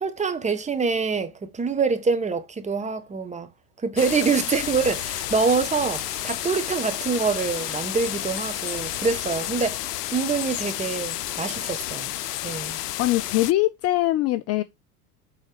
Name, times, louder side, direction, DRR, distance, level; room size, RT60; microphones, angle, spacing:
voice 1, 0.0-3.5 3.8-12.1 12.4-12.8, right 5 dB, 15° right, 1.2 m, -25 dB
sound 1, 2.9-3.2 4.0-10.0, right 8 dB, 80° right, 2.5 m, -47 dB
sound 2, 4.0-13.5, left 14 dB, 85° left, 0.6 m, -31 dB
voice 2, 13.0-14.6, left 16 dB, 35° left, 0.5 m, -22 dB
7.6 x 4.1 x 4.8 m
hypercardioid pair, 100°, 46 cm